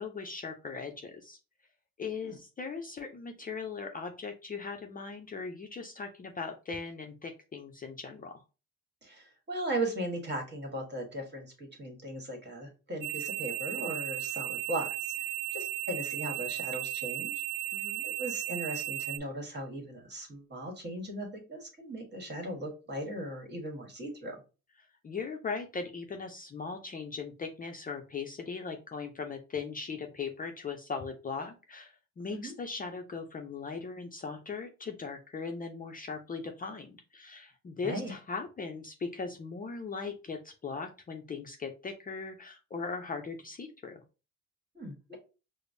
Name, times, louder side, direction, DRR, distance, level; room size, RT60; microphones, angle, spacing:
voice 1, 0.0-1.4 2.0-8.3 17.7-18.0 25.0-44.0, left 4 dB, 30° left, 4 dB, 0.5 m, -39 dB
voice 2, 9.0-17.3 18.0-24.4 32.3-32.5 37.8-38.1 44.7-45.2, right 1 dB, 35° right, 2 dB, 1.5 m, -38 dB
sound 1, 13.0-19.2, right 17 dB, 55° right, 0.4 m, -35 dB
4.9 x 2.0 x 2.5 m, 0.32 s
cardioid pair, 90°, 30 cm